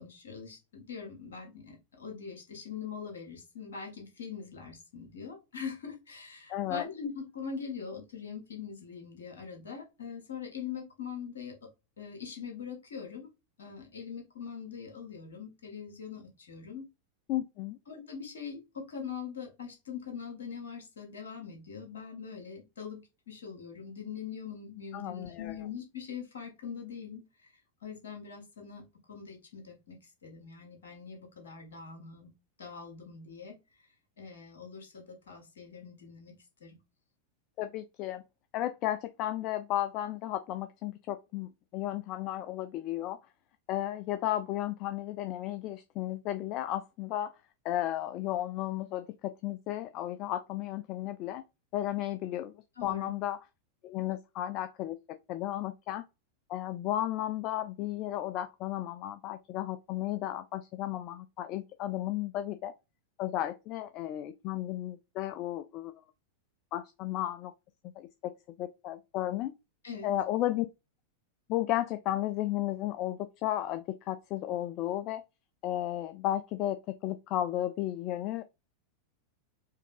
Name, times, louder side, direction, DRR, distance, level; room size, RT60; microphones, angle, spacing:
voice 1, 0.0-11.7 12.0-13.3 13.6-16.9 17.9-27.2 27.8-32.3 32.6-33.6 34.2-36.3 36.6-36.8 52.8-53.1 69.8-70.1, left 6 dB, 65° left, 1.6 m, -42 dB
voice 2, 6.5-6.9 17.3-17.8 24.9-25.6 37.6-38.2 38.5-43.2 43.7-47.3 47.6-51.4 51.7-52.5 52.8-53.4 53.8-56.0 56.5-62.7 63.2-65.9 66.7-67.5 68.0-68.3 68.6-69.5 70.0-70.7 71.5-75.2 75.6-78.4, left 13 dB, 40° left, 0.3 m, -34 dB
4.6 x 2.8 x 3.3 m
figure-of-eight pair, 90°, 0 cm